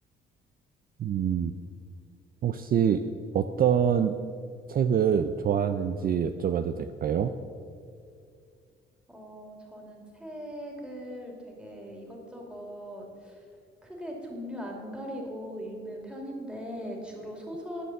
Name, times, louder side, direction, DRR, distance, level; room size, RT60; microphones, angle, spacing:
voice 1, 1.0-1.5 2.4-3.0 3.3-4.2 4.7-7.3, right 8 dB, 50° right, 9 dB, 0.5 m, -25 dB
voice 2, 9.1-13.5 13.8-17.8, equal, 5° right, -1 dB, 2.7 m, -40 dB
9.9 x 7.0 x 7.3 m, 2.3 s
cardioid pair, 90°, 20 cm